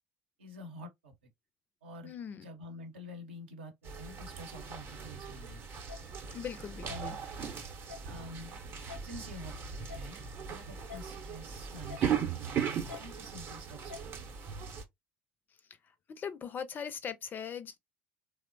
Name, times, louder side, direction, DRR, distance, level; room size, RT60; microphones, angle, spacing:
voice 1, 0.4-1.1 1.8-2.2 2.4-5.8 6.9-7.1 8.0-8.6 9.0-14.6, equal, 70° right, 0.8 m, -48 dB
voice 2, 2.0-2.5 6.3-7.2 16.1-17.8, left 7 dB, 30° left, 0.4 m, -40 dB
sound 1, 3.8-14.8, right 7 dB, 40° right, 0.7 m, -38 dB
sound 2, 5.9-6.0 6.9-7.0 7.9-8.1 8.9-9.0 9.9-10.1 10.9-11.0 11.9-12.1 12.9-13.0 13.9-14.1, left 8 dB, 90° left, 0.7 m, -45 dB
2.9 x 2.0 x 2.5 m
figure-of-eight pair, 65°, 6 cm